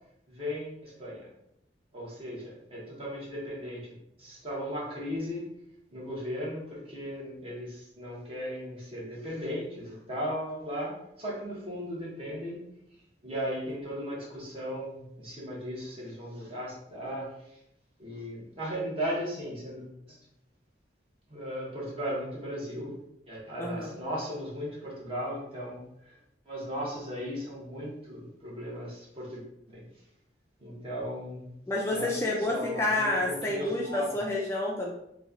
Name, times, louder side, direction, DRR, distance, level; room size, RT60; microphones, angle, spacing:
voice 1, 0.3-1.3 1.9-5.5 5.9-12.7 13.2-17.3 18.0-19.9 21.3-22.9 23.3-26.1 26.5-29.4 29.7-29.8 30.6-31.6 31.9-32.1 32.5-34.2, equal, 30° right, -5 dB, 1.1 m, -36 dB
voice 2, 23.6-23.9 31.7-34.9, left 2 dB, 15° left, -3 dB, 0.4 m, -29 dB
3.0 x 2.3 x 3.7 m, 0.80 s
head